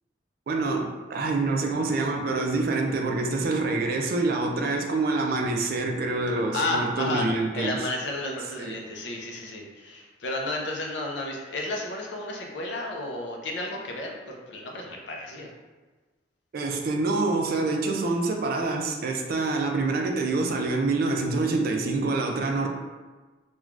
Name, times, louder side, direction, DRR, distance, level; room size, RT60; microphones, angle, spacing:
voice 1, 0.5-7.8 8.6-8.8 16.5-22.7, right 3 dB, 50° right, 2 dB, 0.3 m, -26 dB
voice 2, 6.5-7.3 7.5-15.5, left 2 dB, 70° left, 0 dB, 0.5 m, -32 dB
3.2 x 2.2 x 2.4 m, 1.3 s
head